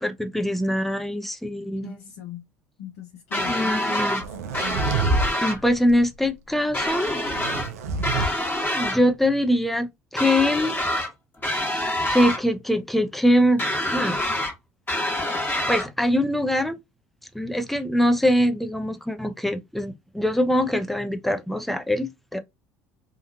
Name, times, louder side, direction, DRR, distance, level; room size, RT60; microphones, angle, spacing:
voice 1, 0.0-1.8 3.4-4.2 5.4-7.2 8.3-9.9 10.1-10.7 11.7-13.6 13.9-14.2 15.7-16.8 17.3-22.4, equal, ahead, 0.5 m, -23 dB
voice 2, 1.8-2.4 2.8-4.2, left 6 dB, 80° left, 0.7 m, -40 dB
sound 1, 3.3-4.2 4.5-5.6 6.7-7.7 8.0-9.0 10.2-11.1 11.4-12.4 13.6-14.5 14.9-15.9, left 1 dB, 25° left, 1.3 m, -26 dB
sound 2, 4.2-5.3 5.6-6.0 7.2-8.3, right 3 dB, 85° right, 0.5 m, -26 dB
2.8 x 2.4 x 2.5 m
hypercardioid pair, 70°, 8 cm